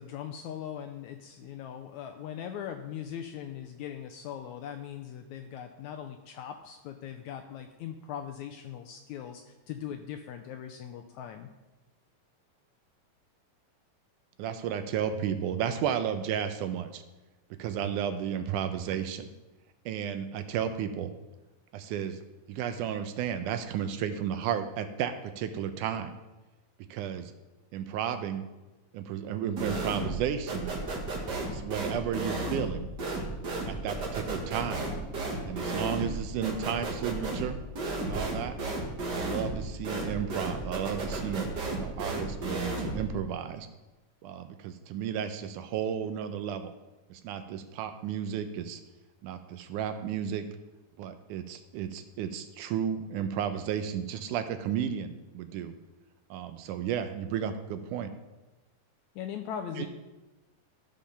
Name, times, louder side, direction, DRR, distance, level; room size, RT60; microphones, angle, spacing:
voice 1, 0.0-11.5 59.2-59.9, left 9 dB, 80° left, 6 dB, 1.7 m, -40 dB
voice 2, 14.4-17.0 17.6-19.3 19.9-21.1 21.7-22.2 22.5-26.2 26.9-27.3 27.7-28.5 28.9-30.7 31.5-32.9 33.7-34.9 35.5-37.6 38.0-38.6 39.1-43.7 44.2-46.7 47.1-48.8 49.2-50.5 51.0-55.8 56.3-58.1 59.8-59.9, right 9 dB, 80° right, 9 dB, 2.0 m, -33 dB
sound 1, 29.6-30.2 30.5-43.1, right 2 dB, 50° right, 1.3 m, -33 dB
13.5 x 5.2 x 5.7 m, 1.1 s
omnidirectional pair, 3.8 m